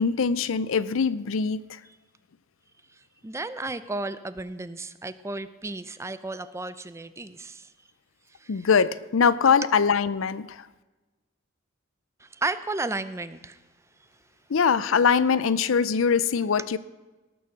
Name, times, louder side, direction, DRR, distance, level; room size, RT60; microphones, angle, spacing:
voice 1, 0.0-1.8 8.5-10.6 14.5-16.8, left 6 dB, 75° left, 17 dB, 0.5 m, -22 dB
voice 2, 3.2-7.7 8.4-8.7 12.2-13.6, right 2 dB, 15° right, 14 dB, 0.5 m, -33 dB
18.0 x 7.0 x 6.3 m, 1.2 s
head